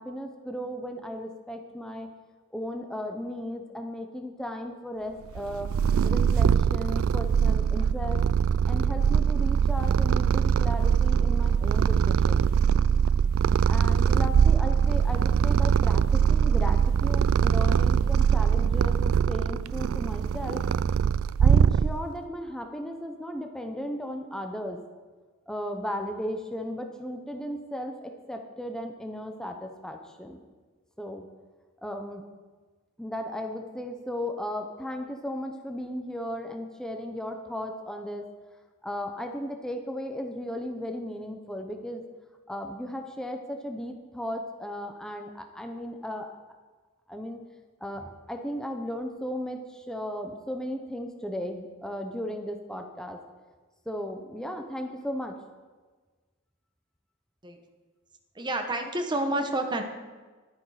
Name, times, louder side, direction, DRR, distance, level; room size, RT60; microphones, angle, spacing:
voice 1, 0.0-2.1 2.5-5.7 6.0-8.2 8.7-12.5 13.7-20.6 21.4-24.8 25.5-30.4 31.0-31.3 31.8-32.2 33.0-38.2 38.8-42.0 42.5-46.3 47.1-47.4 47.8-53.2 53.9-55.4, equal, 5° left, 4 dB, 0.8 m, -35 dB
Purr, 5.3-22.2, right 7 dB, 80° right, 0.3 m, -22 dB
voice 2, 58.3-59.8, right 1 dB, 20° right, 4 dB, 1.1 m, -29 dB
11.5 x 9.7 x 4.9 m, 1.4 s
head